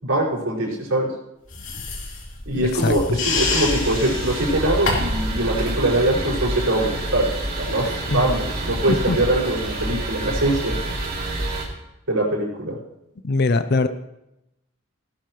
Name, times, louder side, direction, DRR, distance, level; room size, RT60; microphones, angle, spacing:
voice 1, 0.0-1.1 2.5-7.3 7.6-10.8 12.1-12.8, right 1 dB, 80° right, -6 dB, 5.7 m, -22 dB
sound 1, 1.5-5.3, left 3 dB, 65° left, 2.9 m, -27 dB
voice 2, 2.7-3.2 8.1-8.4 8.9-9.2 13.2-13.9, left 3 dB, 50° left, 10 dB, 0.5 m, -22 dB
sound 2, 3.3-11.7, right 1 dB, 45° right, 2.8 m, -28 dB
18.0 x 12.0 x 3.1 m, 0.89 s
head